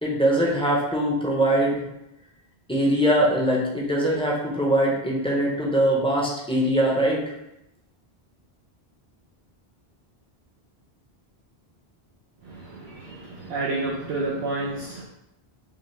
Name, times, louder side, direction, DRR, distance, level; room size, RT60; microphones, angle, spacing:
voice 1, 0.0-1.8 2.7-7.2, right 1 dB, 5° left, -4 dB, 0.6 m, -22 dB
voice 2, 13.5-15.0, right 2 dB, 80° right, -5 dB, 0.9 m, -28 dB
5.2 x 2.0 x 3.2 m, 0.87 s
omnidirectional pair, 1.1 m